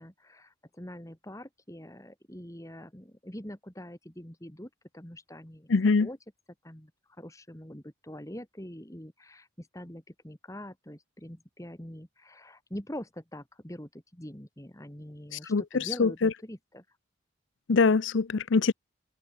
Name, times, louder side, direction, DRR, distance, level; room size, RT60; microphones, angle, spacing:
voice 1, 0.0-6.2 6.6-17.0, equal, 15° left, 2.6 m, -44 dB
voice 2, 5.7-6.1 15.5-16.3 17.7-18.7, left 4 dB, 75° left, 0.6 m, -23 dB
head